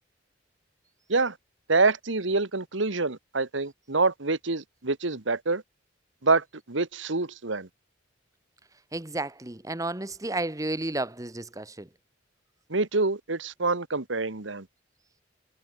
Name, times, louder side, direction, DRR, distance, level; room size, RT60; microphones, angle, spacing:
voice 1, 1.7-5.6 6.2-7.7 12.7-14.7, right 3 dB, 80° right, 1.7 m, -26 dB
voice 2, 8.9-11.9, right 2 dB, 20° right, 1.2 m, -32 dB
head